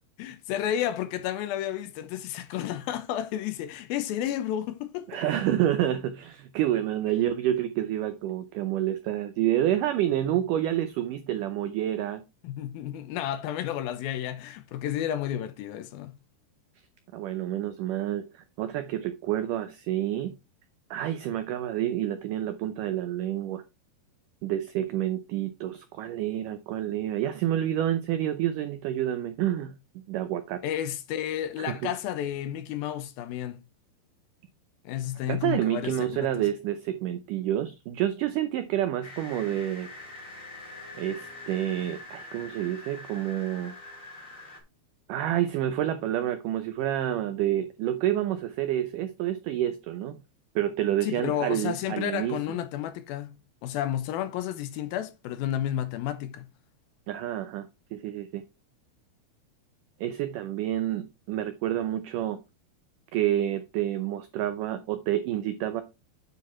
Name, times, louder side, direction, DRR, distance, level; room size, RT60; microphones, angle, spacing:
voice 1, 0.2-5.2 12.4-16.1 30.6-33.6 34.9-36.3 51.0-53.3 53.6-56.5, left 11 dB, 75° left, 2.4 m, -31 dB
voice 2, 5.1-12.2 17.1-20.4 20.9-23.6 24.4-29.8 30.1-30.6 31.6-31.9 35.3-39.9 41.0-43.7 45.1-50.2 50.6-52.4 57.1-58.4 60.0-62.4 63.1-65.8, right 12 dB, 85° right, 1.8 m, -28 dB
sound 1, 39.0-44.6, left 2 dB, 25° left, 2.3 m, -44 dB
9.3 x 4.7 x 4.3 m
omnidirectional pair, 4.6 m